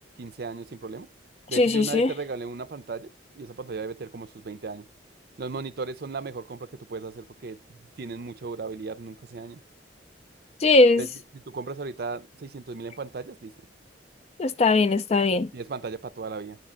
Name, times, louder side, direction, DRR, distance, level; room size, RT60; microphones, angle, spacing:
voice 1, 0.2-1.1 1.5-3.1 3.4-4.8 5.4-9.6 11.0-11.1 11.3-13.5 15.5-16.6, right 4 dB, 55° right, 0.5 m, -36 dB
voice 2, 1.5-2.1 10.6-11.0 14.4-15.5, left 3 dB, 35° left, 0.4 m, -20 dB
9.4 x 4.4 x 3.6 m
head